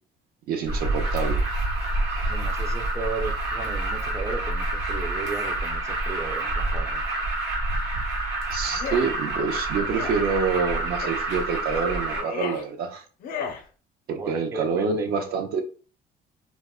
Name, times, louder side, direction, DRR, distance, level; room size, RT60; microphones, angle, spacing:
voice 1, 0.5-1.4 8.5-13.0 14.1-15.6, right 5 dB, 65° right, 0.6 m, -27 dB
Alarm, 0.7-12.2, right 2 dB, 85° right, 1.1 m, -27 dB
voice 2, 2.3-7.0 14.1-15.1, right 4 dB, 15° right, 0.4 m, -35 dB
sound 1, 8.7-9.1 9.9-10.2 11.0-11.2 12.0-12.6 13.2-13.6, left 6 dB, 55° left, 0.5 m, -34 dB
2.2 x 2.0 x 3.5 m
cardioid pair, 110°, 17 cm